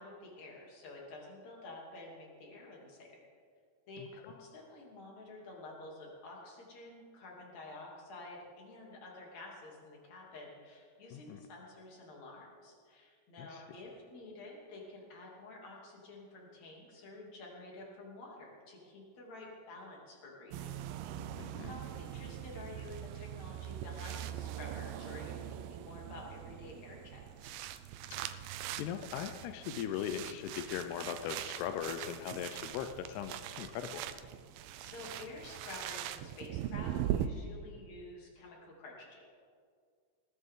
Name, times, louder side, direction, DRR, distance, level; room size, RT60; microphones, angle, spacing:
voice 1, 0.0-3.1 3.9-20.8 21.3-27.5 34.8-39.2, left 2 dB, 45° left, -2 dB, 3.9 m, -50 dB
sound 1, 20.5-37.3, right 11 dB, 80° right, 2.2 m, -41 dB
voice 2, 21.4-21.7 28.1-28.5 28.8-34.1, left 9 dB, 85° left, 7 dB, 2.7 m, -39 dB
20.0 x 16.0 x 3.8 m, 2.1 s
omnidirectional pair, 4.6 m